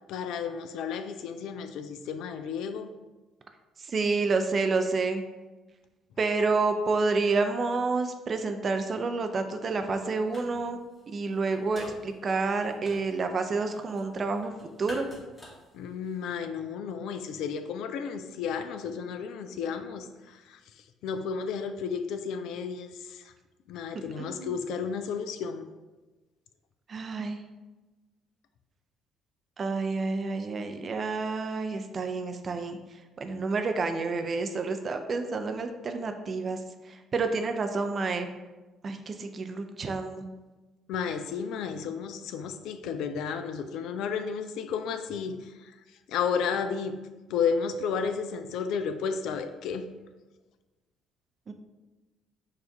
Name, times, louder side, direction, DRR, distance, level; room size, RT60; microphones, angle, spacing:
voice 1, 0.1-2.9 15.7-20.6 21.0-23.2 23.7-25.7 40.9-45.7 46.1-47.0 47.3-49.9, left 6 dB, 60° left, 8 dB, 0.3 m, -32 dB
voice 2, 3.8-5.2 6.2-10.8 11.1-14.5 14.8-15.1 24.2-24.6 26.9-27.4 29.6-32.8 33.2-36.6 36.9-38.3 38.8-40.3 51.5-51.6, right 3 dB, 40° right, 6 dB, 0.5 m, -29 dB
sound 1, 9.8-10.7 10.9-16.3, left 1 dB, 30° left, 1.4 m, -48 dB
4.6 x 2.5 x 4.5 m, 1.2 s
figure-of-eight pair, 50°, 0 cm